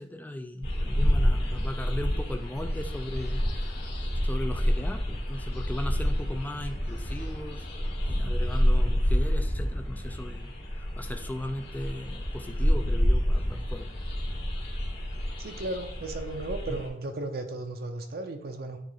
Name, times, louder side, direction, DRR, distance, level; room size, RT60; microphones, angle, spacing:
voice 1, 0.0-3.9 4.2-7.7 8.0-13.9 16.7-16.8, left 1 dB, 10° left, 6 dB, 0.4 m, -37 dB
sound 1, 0.6-16.9, equal, 65° left, 2.5 m, -28 dB
voice 2, 15.4-18.8, right 2 dB, 55° right, 5 dB, 0.7 m, -35 dB
9.4 x 3.2 x 3.9 m, 0.73 s
head